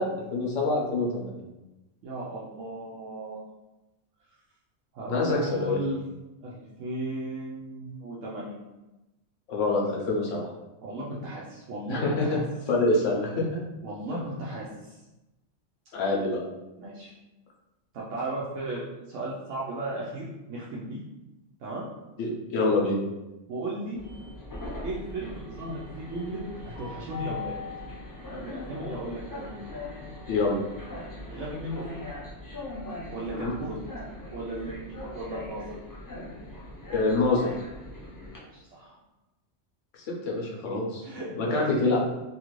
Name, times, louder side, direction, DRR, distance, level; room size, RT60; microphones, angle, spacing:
voice 1, 0.0-1.4 5.1-5.8 9.5-10.5 11.9-12.4 12.7-13.6 15.9-16.4 22.2-23.0 30.3-30.6 33.3-33.5 36.9-37.5 40.0-41.0 41.4-42.0, left 2 dB, 80° left, -2 dB, 1.1 m, -26 dB
voice 2, 2.0-3.4 4.9-6.0 6.4-8.6 10.8-12.4 13.8-15.0 16.8-17.1 17.9-21.0 21.6-21.9 23.5-24.0 24.8-27.6 28.4-29.5 31.3-32.0 33.1-33.8 34.3-35.8 38.4-39.0 41.0-42.0, right 2 dB, 85° right, -6 dB, 1.0 m, -35 dB
Train, 24.0-38.4, left 2 dB, 25° left, 0.5 m, -40 dB
2.9 x 2.4 x 3.0 m, 1.0 s
omnidirectional pair, 1.3 m